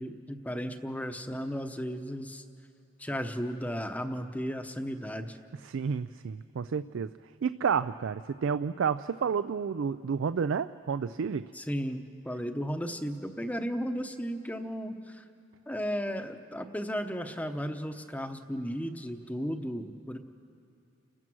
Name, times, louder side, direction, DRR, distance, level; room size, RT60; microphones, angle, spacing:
voice 1, 0.0-2.4 3.0-5.4 11.5-15.2 15.7-20.2, equal, 5° left, 7 dB, 0.8 m, -35 dB
voice 2, 5.6-7.1 7.4-11.4, right 6 dB, 70° right, 13 dB, 0.4 m, -30 dB
29.5 x 15.5 x 6.2 m, 2.8 s
head